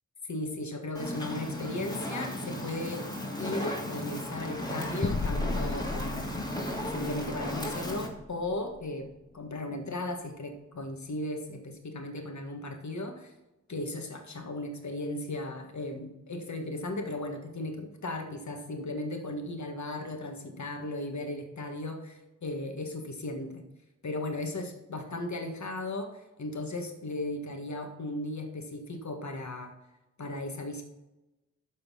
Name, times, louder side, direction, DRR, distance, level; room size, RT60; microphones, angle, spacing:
voice 1, 0.3-3.0 3.4-6.4 6.8-9.1 9.3-13.3 13.7-23.6 24.0-29.7 30.2-30.8, left 2 dB, 65° left, 4 dB, 1.7 m, -36 dB
Fire, 0.9-8.1, equal, 15° left, 2.6 m, -35 dB
sound 1, 5.0-9.8, left 3 dB, 35° left, 0.7 m, -36 dB
12.5 x 4.3 x 5.6 m, 1.0 s
cardioid pair, 55°, 30 cm